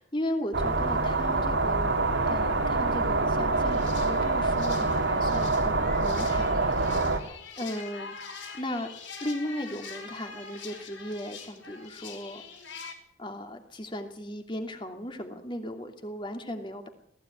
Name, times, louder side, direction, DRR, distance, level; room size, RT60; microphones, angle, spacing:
voice 1, 0.0-1.9 2.3-8.1 8.5-8.9 9.2-12.4 13.2-16.9, left 1 dB, 25° left, 4 dB, 2.7 m, -36 dB
sound 1, 0.5-7.2, right 3 dB, 80° right, 2.4 m, -26 dB
sound 2, 3.5-12.9, left 5 dB, 85° left, 5.1 m, -44 dB
19.0 x 15.5 x 9.5 m, 0.67 s
head